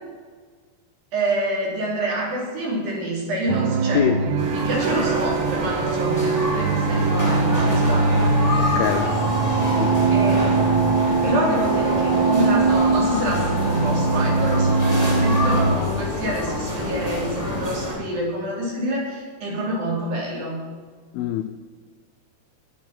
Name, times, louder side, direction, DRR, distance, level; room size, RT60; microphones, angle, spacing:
voice 1, 1.1-9.1 9.4-9.7 10.1-11.0 11.2-20.7, right 1 dB, 55° right, -4 dB, 4.9 m, -27 dB
sound 1, 3.5-15.8, right 4 dB, 90° right, 2.9 m, -22 dB
voice 2, 3.9-4.2 8.6-9.1 9.7-10.0 21.1-21.5, left 11 dB, 85° left, 8 dB, 2.1 m, -24 dB
sound 2, 4.4-17.9, left 1 dB, 5° right, 2.9 m, -27 dB
sound 3, 4.6-18.0, left 7 dB, 65° left, 2.4 m, -33 dB
20.0 x 7.3 x 5.9 m, 1.6 s
omnidirectional pair, 4.9 m